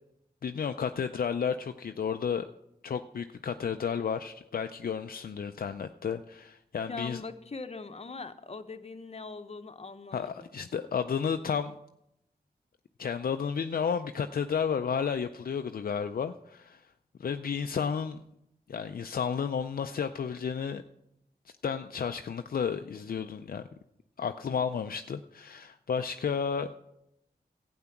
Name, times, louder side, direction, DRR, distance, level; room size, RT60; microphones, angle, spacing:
voice 1, 0.4-2.5 2.8-7.2 10.1-11.7 13.0-16.8 17.2-18.2 18.7-20.8 21.6-23.6 24.2-26.7, left 6 dB, 60° left, 7 dB, 0.5 m, -32 dB
voice 2, 6.9-10.5, left 4 dB, 40° left, 8 dB, 0.9 m, -41 dB
12.0 x 8.7 x 5.9 m, 0.82 s
cardioid pair, 55°, 17 cm